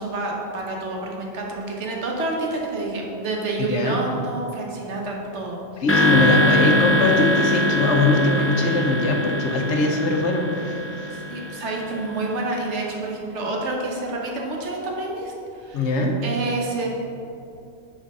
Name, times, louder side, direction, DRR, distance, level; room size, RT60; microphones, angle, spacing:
voice 1, 0.0-5.8 8.4-8.6 10.9-16.9, right 2 dB, 85° right, -1 dB, 1.2 m, -29 dB
voice 2, 3.6-4.0 5.8-11.2 15.7-16.2, left 2 dB, 80° left, 2 dB, 1.1 m, -22 dB
sound 1, 5.9-12.3, left 1 dB, 20° left, 0.3 m, -22 dB
5.2 x 3.9 x 5.3 m, 2.7 s
omnidirectional pair, 1.2 m